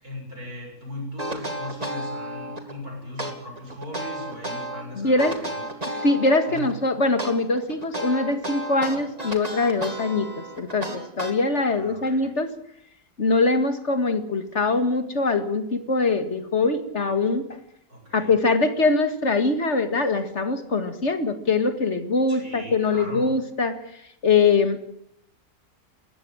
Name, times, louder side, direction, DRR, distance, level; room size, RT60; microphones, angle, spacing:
voice 1, 0.0-5.6 6.5-6.7 11.7-12.2 17.9-18.3 22.3-23.3, left 1 dB, 65° right, 1 dB, 7.5 m, -38 dB
sound 1, 1.2-2.7 3.2-4.8 5.2-6.7 7.2-11.7, right 1 dB, 25° right, 2.8 m, -32 dB
voice 2, 5.0-5.4 5.9-12.5 13.2-17.5 18.1-23.8 24.2-24.9, left 3 dB, 45° left, 9 dB, 2.2 m, -23 dB
20.0 x 15.5 x 9.0 m, 0.75 s
omnidirectional pair, 1.7 m